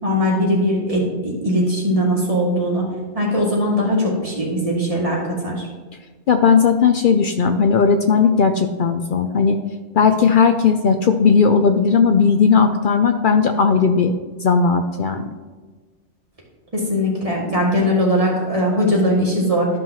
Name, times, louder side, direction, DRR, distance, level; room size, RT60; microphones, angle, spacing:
voice 1, 0.0-2.9 3.1-5.7 16.7-19.7, equal, 25° right, -4 dB, 2.2 m, -20 dB
voice 2, 6.3-9.6 9.9-14.1 14.4-15.3, left 5 dB, 60° left, 7 dB, 0.6 m, -16 dB
13.0 x 5.5 x 2.9 m, 1.4 s
omnidirectional pair, 1.3 m